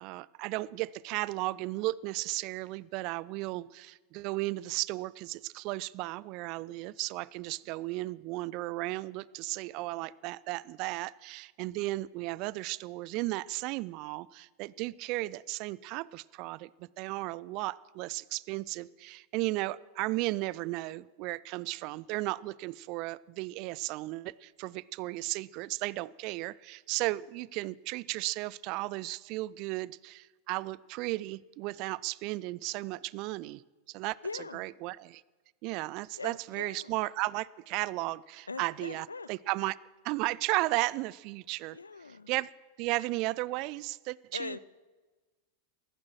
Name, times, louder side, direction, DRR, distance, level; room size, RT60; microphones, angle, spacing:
voice 1, 0.0-33.6 33.9-35.2 35.6-39.8 40.0-41.8 42.3-42.5 42.8-44.6, right 20 dB, 40° right, 22 dB, 0.4 m, -35 dB
voice 2, 34.2-34.6 36.2-36.9 38.5-39.3 41.7-42.3 44.3-44.6, left 4 dB, 75° left, 18 dB, 0.5 m, -41 dB
15.0 x 11.5 x 7.7 m, 1.3 s
figure-of-eight pair, 90°, 0 cm